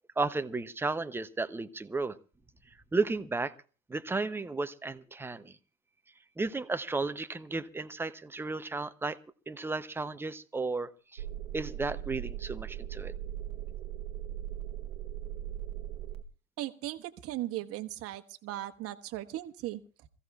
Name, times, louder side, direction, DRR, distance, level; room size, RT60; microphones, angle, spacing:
voice 1, 0.2-2.2 2.9-3.5 3.9-5.5 6.4-9.2 9.5-11.2 11.5-13.1, right 3 dB, 5° right, 11 dB, 0.6 m, -33 dB
sound 1, 11.2-16.2, right 11 dB, 75° right, 1.0 m, -39 dB
voice 2, 16.6-20.1, right 15 dB, 35° right, 8 dB, 1.3 m, -38 dB
27.0 x 15.5 x 2.4 m, 0.37 s
hypercardioid pair, 100°, 40 cm